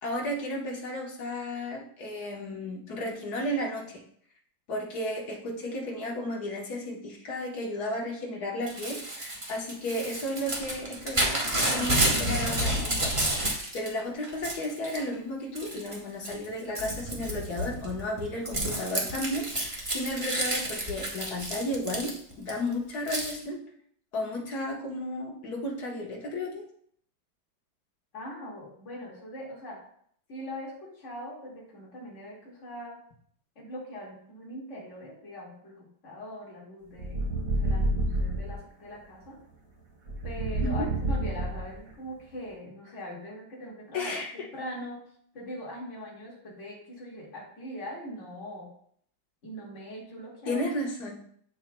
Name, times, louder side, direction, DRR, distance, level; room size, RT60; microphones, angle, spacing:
voice 1, 0.0-4.0 4.7-13.1 13.5-23.6 24.1-26.6 40.6-40.9 43.9-44.5 50.5-51.2, left 1 dB, 55° left, -1 dB, 1.8 m, -33 dB
Crumpling crinkling / Tearing, 8.7-13.9 14.2-15.0 15.5-16.0 16.2-22.5 23.1-23.3, right 1 dB, 20° right, 0.9 m, -30 dB
voice 2, 28.1-29.8 30.3-33.0 33.6-39.4 40.2-45.0 45.3-48.7 49.4-50.6, equal, 35° left, -5 dB, 2.3 m, -41 dB
sound 1, 37.0-38.6 40.1-41.9, right 2 dB, 45° right, 2.1 m, -28 dB
7.6 x 7.2 x 2.3 m, 0.63 s
omnidirectional pair, 2.1 m